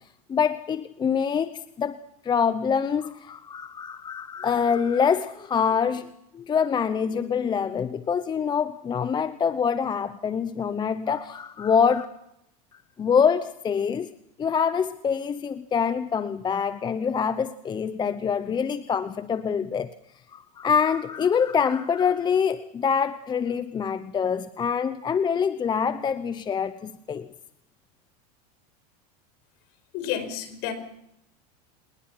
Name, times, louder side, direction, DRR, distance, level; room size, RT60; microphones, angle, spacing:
voice 1, 0.3-2.0 2.2-12.0 13.0-14.1 14.4-19.9 20.3-27.3, left 6 dB, 20° left, 13 dB, 0.8 m, -25 dB
voice 2, 29.9-30.7, left 10 dB, 60° left, 10 dB, 5.6 m, -30 dB
26.0 x 20.5 x 5.8 m, 0.77 s
supercardioid pair, 120°, 21 cm